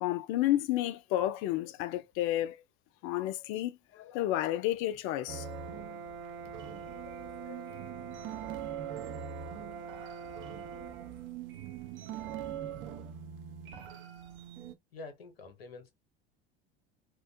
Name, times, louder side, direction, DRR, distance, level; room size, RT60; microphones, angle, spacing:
voice 1, 0.0-2.6 3.0-5.6 7.4-7.6, left 14 dB, 45° left, 0.4 m, -31 dB
sound 1, 5.3-14.7, right 7 dB, 40° right, 0.5 m, -41 dB
voice 2, 14.9-15.9, left 3 dB, 75° left, 0.8 m, -47 dB
2.4 x 2.2 x 2.5 m
figure-of-eight pair, 65°, 30 cm